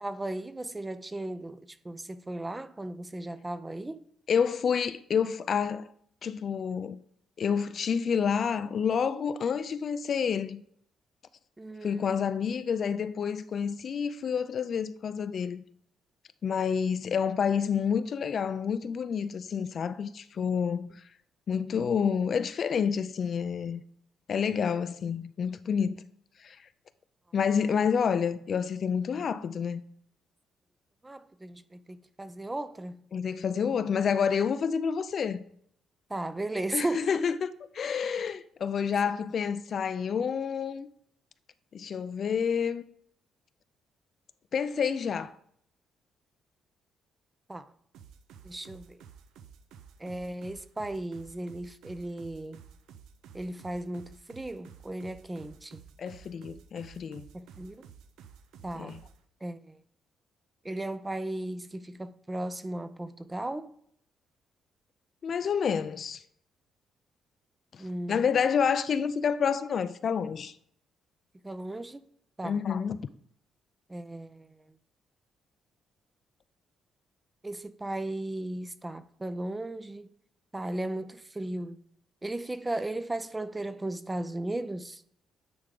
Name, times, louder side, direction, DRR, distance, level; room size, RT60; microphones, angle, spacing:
voice 1, 0.0-4.1 11.6-12.2 31.0-33.0 36.1-37.1 47.5-47.7 48.4-49.0 50.0-52.6 53.3-55.8 57.3-57.8 58.6-59.0 59.4-59.8 60.6-63.7 67.8-68.3 71.4-72.0 72.4-72.6 73.9-74.6 77.4-80.1 80.5-81.8 82.2-85.0, right 1 dB, 15° right, 0.5 m, -36 dB
voice 2, 4.3-5.9 6.2-7.0 7.4-10.6 11.8-15.6 16.4-20.9 21.5-23.8 24.3-26.0 26.4-26.6 27.3-29.8 33.1-35.4 36.7-40.9 41.7-42.8 44.5-45.3 56.0-57.2 58.8-59.0 65.2-66.2 67.7-70.5 72.4-73.0, left 7 dB, 55° left, 0.4 m, -29 dB
sound 1, 47.9-59.2, right 7 dB, 85° right, 0.5 m, -52 dB
9.5 x 3.6 x 3.7 m
cardioid pair, 90°, 0 cm